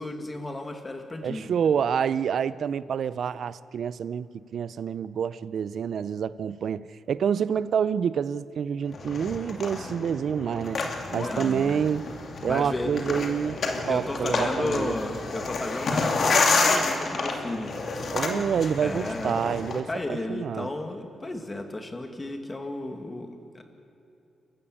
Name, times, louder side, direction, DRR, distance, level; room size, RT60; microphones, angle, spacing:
voice 1, 0.0-1.5 11.1-11.8 12.5-12.9 13.9-17.8 18.3-18.4 18.8-19.4 19.8-23.3 23.5-23.6, left 2 dB, 20° left, 2.4 m, -33 dB
voice 2, 1.2-4.3 4.5-10.8 11.1-12.0 12.4-13.6 13.9-14.9 18.1-20.7, right 7 dB, 65° right, 0.6 m, -27 dB
sound 1, 8.9-19.8, left 3 dB, 50° left, 2.6 m, -29 dB
30.0 x 14.5 x 8.7 m
wide cardioid pair, 125°, 0 cm